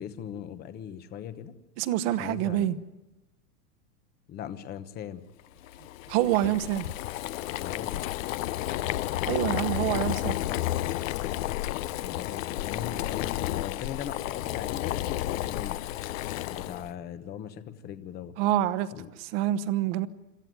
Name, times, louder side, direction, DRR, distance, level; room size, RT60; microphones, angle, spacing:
voice 1, 0.0-1.6 2.1-2.7 4.3-5.3 7.6-8.0 12.0-15.8 16.5-18.4 18.9-19.1, left 9 dB, 20° left, 11 dB, 1.0 m, -39 dB
voice 2, 1.8-2.8 6.1-6.9 9.3-10.4 18.4-18.9 19.2-20.1, right 13 dB, 40° right, 14 dB, 1.1 m, -26 dB
Boiling, 5.6-16.9, left 15 dB, 55° left, 0.7 m, -32 dB
27.0 x 14.0 x 9.4 m, 1.0 s
supercardioid pair, 155°, 48 cm